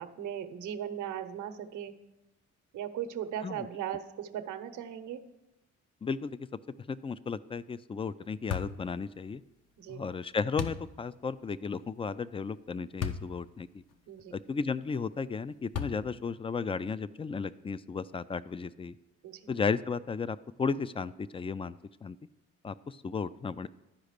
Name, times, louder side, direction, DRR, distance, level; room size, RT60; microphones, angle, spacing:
voice 1, 0.0-2.0 2.7-5.3 9.8-10.0 14.1-14.4 19.2-19.5, right 10 dB, 75° right, 9 dB, 0.9 m, -38 dB
voice 2, 6.0-6.4 6.9-9.4 9.9-13.8 14.3-19.0 19.5-22.2 22.6-23.7, left 5 dB, 20° left, 16 dB, 0.3 m, -34 dB
sound 1, 8.5-8.8 10.6-10.9 13.0-13.3 13.9-14.0 15.7-16.2, left 8 dB, 55° left, 0.9 m, -34 dB
12.0 x 5.0 x 6.5 m, 0.99 s
cardioid pair, 90°, 30 cm